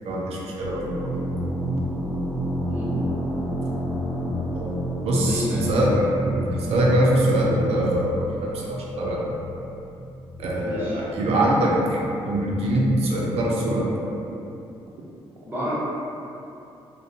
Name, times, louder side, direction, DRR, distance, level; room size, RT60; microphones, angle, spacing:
voice 1, 0.1-0.8 4.5-4.7 5.0-5.9 6.3-9.2 10.4-13.9, right 1 dB, 70° right, -3 dB, 0.5 m, -23 dB
sound 1, 0.6-12.1, equal, 65° left, 0.9 m, -30 dB
voice 2, 5.1-5.9 10.6-11.0 15.4-15.8, left 1 dB, 20° right, -10 dB, 1.2 m, -30 dB
2.5 x 2.1 x 2.7 m, 2.8 s
supercardioid pair, 55°, 11 cm